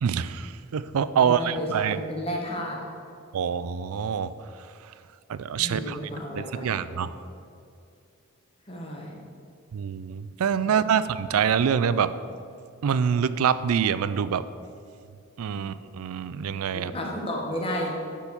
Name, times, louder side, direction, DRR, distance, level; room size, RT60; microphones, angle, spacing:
voice 1, 0.0-2.0 3.3-4.3 4.8-4.9 5.3-6.0 6.4-7.1 9.7-12.1 12.8-14.5 15.4-16.9, right 7 dB, 75° right, 14 dB, 0.4 m, -25 dB
voice 2, 1.1-2.8 5.6-6.8 8.7-9.2 10.6-10.7 16.7-17.9, equal, 25° left, -1 dB, 1.3 m, -32 dB
9.9 x 4.5 x 6.9 m, 2.5 s
head